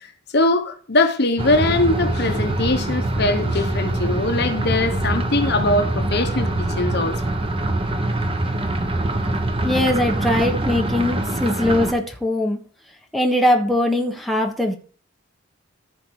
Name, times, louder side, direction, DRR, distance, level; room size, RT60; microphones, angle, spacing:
voice 1, 0.3-7.2, left 2 dB, 55° left, 1.2 m, -21 dB
sound 1, 1.4-11.9, right 1 dB, 30° right, 1.1 m, -24 dB
voice 2, 9.6-12.6 13.1-14.8, left 1 dB, ahead, 1.4 m, -21 dB
14.5 x 5.0 x 4.8 m
head